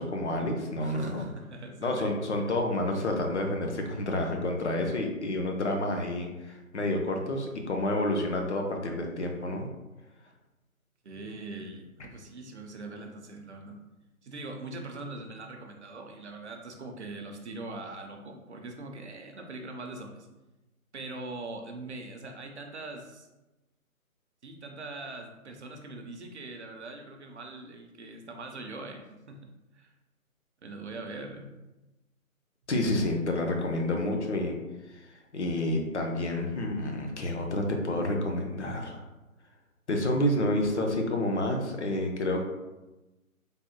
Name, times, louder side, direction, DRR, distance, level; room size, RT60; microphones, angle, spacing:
voice 1, 0.0-1.2 1.8-9.7 32.7-34.6 34.9-35.0 35.3-39.0 39.9-42.4, left 1 dB, 55° left, 3 dB, 0.6 m, -29 dB
voice 2, 0.8-2.1 2.5-2.6 11.0-13.8 14.2-20.3 20.9-23.3 24.4-29.5 29.7-29.9 30.6-31.5, right 2 dB, 50° right, 3 dB, 0.5 m, -42 dB
3.4 x 2.1 x 2.8 m, 1.1 s
figure-of-eight pair, 155°, 44 cm